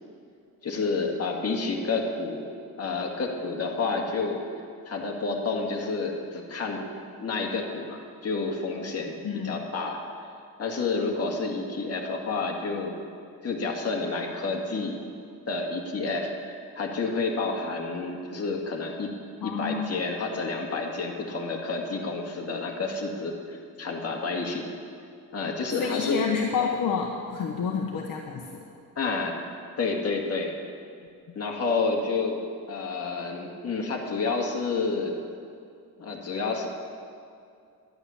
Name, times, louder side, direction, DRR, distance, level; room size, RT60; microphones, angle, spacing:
voice 1, 0.6-2.5 2.8-4.4 4.9-6.9 7.2-10.0 10.6-13.0 13.4-15.0 15.5-19.1 19.4-24.7 25.3-26.2 29.0-29.3 29.8-30.5 31.4-32.4 32.7-35.2 36.0-36.7, left 4 dB, 40° left, 0 dB, 2.0 m, -29 dB
voice 2, 9.2-9.6 19.4-19.9 25.7-28.6, left 6 dB, 60° left, 1 dB, 1.1 m, -29 dB
11.5 x 10.5 x 7.1 m, 2.4 s
cardioid pair, 135°, 36 cm